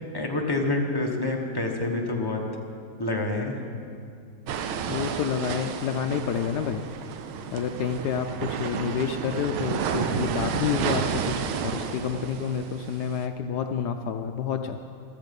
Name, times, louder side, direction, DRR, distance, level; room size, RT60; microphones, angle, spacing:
voice 1, 0.1-2.4 3.0-3.6, left 2 dB, 15° left, 0 dB, 0.9 m, -27 dB
sound 1, 4.5-13.3, right 7 dB, 80° right, 1.6 m, -31 dB
voice 2, 4.9-6.9 7.5-14.8, left 7 dB, 80° left, 6 dB, 0.9 m, -29 dB
14.0 x 13.5 x 5.3 m, 2.4 s
omnidirectional pair, 2.4 m